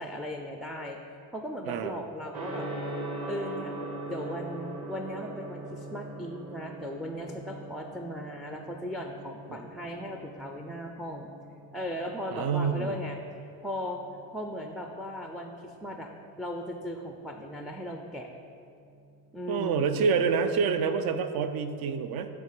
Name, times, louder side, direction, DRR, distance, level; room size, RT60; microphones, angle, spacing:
voice 1, 0.0-2.7 3.2-3.8 4.1-11.3 11.7-14.0 14.3-16.1 16.4-18.3 19.3-20.1, equal, ahead, 3 dB, 0.3 m, -37 dB
voice 2, 1.6-2.0 9.5-9.6 12.3-13.0 19.5-22.3, right 5 dB, 65° right, 9 dB, 0.6 m, -27 dB
Gong, 2.3-21.3, right 2 dB, 40° right, 1.4 m, -43 dB
8.5 x 3.4 x 6.6 m, 2.6 s
cardioid pair, 120°, 40 cm